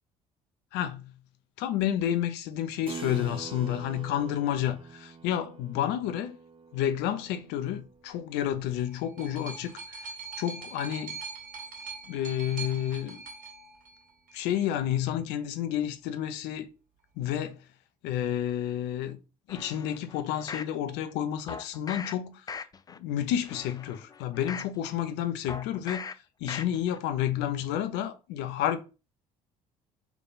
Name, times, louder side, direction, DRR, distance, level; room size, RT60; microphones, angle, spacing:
voice 1, 0.7-1.1 1.6-6.4 6.7-10.0 10.4-11.2 12.1-13.2 14.3-16.7 17.2-17.6 18.0-19.2 19.5-22.6 23.0-26.1 26.4-28.8, left 11 dB, 65° left, 0.6 m, -30 dB
Keyboard (musical), 2.9-8.9, right 5 dB, 30° right, 0.5 m, -45 dB
sound 1, 8.5-14.5 15.4-15.5, right 5 dB, 45° right, 1.5 m, -42 dB
sound 2, 19.5-20.7 21.5-22.1 22.5-23.0 23.4-24.7 25.5-26.1 26.5-27.0 27.4-27.5, left 5 dB, 20° left, 0.3 m, -40 dB
3.4 x 2.9 x 3.9 m
hypercardioid pair, 60°, 19 cm